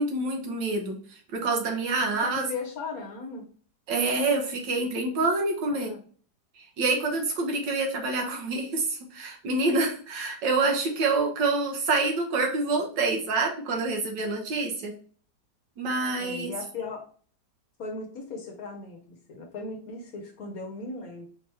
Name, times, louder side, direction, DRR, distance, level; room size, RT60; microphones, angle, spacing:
voice 1, 0.0-2.5 3.9-5.9 6.6-14.9 15.8-16.5, right 3 dB, 75° right, 2 dB, 1.5 m, -27 dB
voice 2, 1.9-3.4 5.7-6.0 16.2-17.0 17.8-21.3, left 3 dB, 60° left, 2 dB, 1.1 m, -37 dB
4.3 x 3.0 x 3.3 m, 0.43 s
omnidirectional pair, 2.0 m